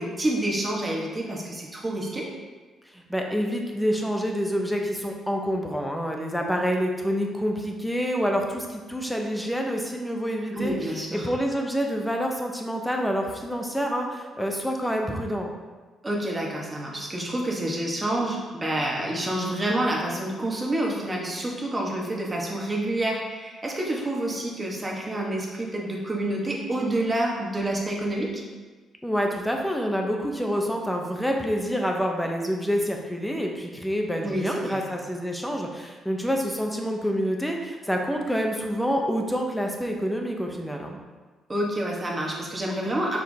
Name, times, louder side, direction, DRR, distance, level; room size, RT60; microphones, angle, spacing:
voice 1, 0.0-2.3 10.5-11.3 16.0-28.4 34.2-34.8 41.5-43.2, right 1 dB, 25° right, -2 dB, 1.5 m, -28 dB
voice 2, 2.9-15.5 29.0-41.0, equal, 5° left, 1 dB, 0.9 m, -27 dB
6.0 x 4.6 x 3.6 m, 1.3 s
cardioid pair, 90°, 0 cm